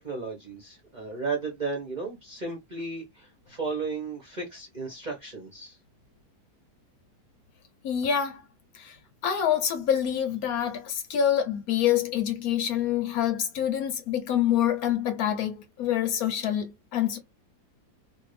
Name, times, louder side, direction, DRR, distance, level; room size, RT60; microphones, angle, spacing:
voice 1, 0.0-5.8, right 4 dB, 40° right, 0.7 m, -34 dB
voice 2, 7.8-8.4 8.7-9.0 9.2-17.2, left 9 dB, 70° left, 1.1 m, -26 dB
2.7 x 2.5 x 3.1 m
omnidirectional pair, 1.7 m